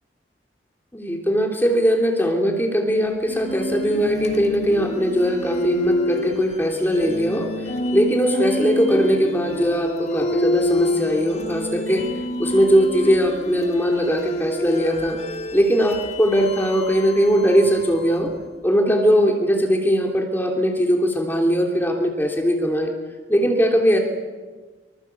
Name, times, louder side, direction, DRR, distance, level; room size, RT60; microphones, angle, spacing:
voice 1, 0.9-12.0 12.4-15.2 15.5-18.3 18.6-22.9 23.3-24.0, equal, 10° left, 1 dB, 3.1 m, -20 dB
sound 1, 3.3-18.4, left 1 dB, 35° left, 1.8 m, -27 dB
25.5 x 24.5 x 8.4 m, 1.4 s
head